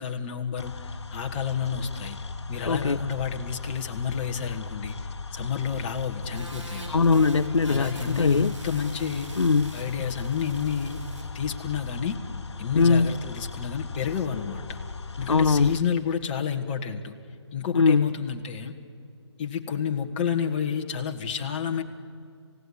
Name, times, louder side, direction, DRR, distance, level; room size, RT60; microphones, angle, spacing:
voice 1, 0.0-2.2 2.5-6.9 7.6-9.4 9.7-11.0 11.3-12.2 12.6-14.8 15.2-17.1 17.5-18.7 19.4-21.8, left 7 dB, 20° left, 2 dB, 1.6 m, -30 dB
sound 1, 0.6-15.8, left 4 dB, 65° left, 1.3 m, -38 dB
voice 2, 2.7-3.0 6.9-8.5 9.4-9.8 12.7-13.1 15.3-15.8 17.7-18.1, left 4 dB, 85° left, 16 dB, 0.6 m, -21 dB
sound 2, 6.3-11.2, right 1 dB, 90° right, 5.9 m, -43 dB
28.0 x 17.0 x 9.7 m, 2.4 s
figure-of-eight pair, 155°, 15 cm